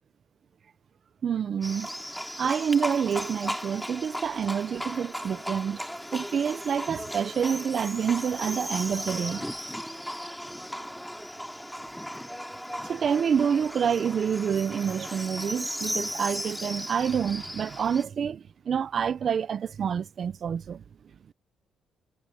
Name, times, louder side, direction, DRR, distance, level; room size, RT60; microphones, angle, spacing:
voice 1, 1.2-1.9 2.4-5.8 6.1-9.5 12.8-20.8, right 7 dB, 55° right, 1.1 m, -27 dB
Livestock farm animals working animals, 1.6-18.0, equal, ahead, 3.7 m, -36 dB
cardioid pair, 90°, 0 cm